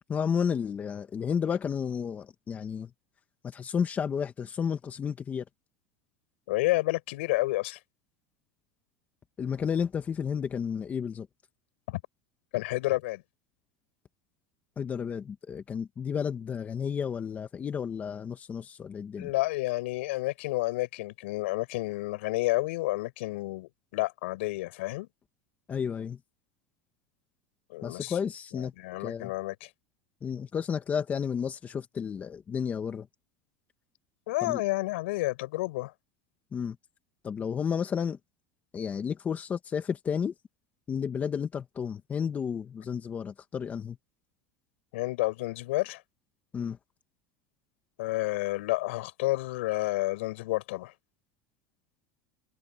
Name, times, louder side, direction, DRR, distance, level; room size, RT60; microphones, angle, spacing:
voice 1, 0.1-2.9 3.4-5.4 9.4-11.3 14.8-19.3 25.7-26.2 27.8-28.7 29.0-29.3 30.2-33.1 34.4-34.6 36.5-36.8 37.2-38.2 38.7-40.3 40.9-44.0 46.5-46.8, left 7 dB, 25° left, 1.6 m, -32 dB
voice 2, 6.5-7.8 11.9-12.0 12.5-13.2 19.2-25.1 27.7-28.1 28.8-29.7 34.3-35.9 44.9-46.0 48.0-50.9, left 20 dB, 85° left, 7.5 m, -30 dB
supercardioid pair, 140°, 6 cm